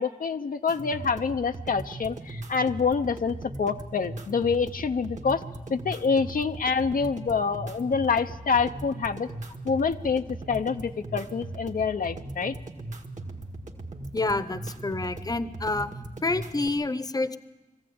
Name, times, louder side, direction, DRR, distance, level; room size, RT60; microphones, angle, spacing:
voice 1, 0.0-5.4 5.7-9.3 9.6-12.6, left 5 dB, 75° left, 7 dB, 0.6 m, -26 dB
sound 1, 0.7-16.7, right 2 dB, 60° right, 1.9 m, -39 dB
voice 2, 14.1-15.9 16.2-17.4, left 2 dB, 25° left, 13 dB, 0.8 m, -28 dB
21.5 x 15.0 x 8.7 m, 1.1 s
wide cardioid pair, 85°, 15 cm